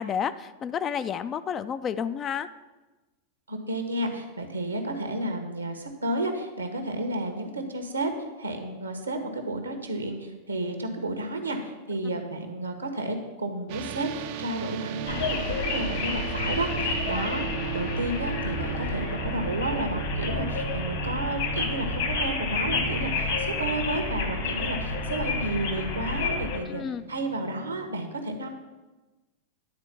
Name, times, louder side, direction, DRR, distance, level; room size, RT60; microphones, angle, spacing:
voice 1, 0.0-2.5 17.1-17.2 26.7-27.0, left 7 dB, 25° left, 12 dB, 0.4 m, -30 dB
voice 2, 3.5-8.1 8.4-17.4 17.7-26.8 27.1-28.5, right 1 dB, 80° right, 5 dB, 1.3 m, -32 dB
sound 1, 13.7-27.9, right 11 dB, 50° right, 0.5 m, -37 dB
sound 2, 15.1-26.6, left 4 dB, 55° left, 1.5 m, -30 dB
10.5 x 4.4 x 7.2 m, 1.1 s
figure-of-eight pair, 90°, 0 cm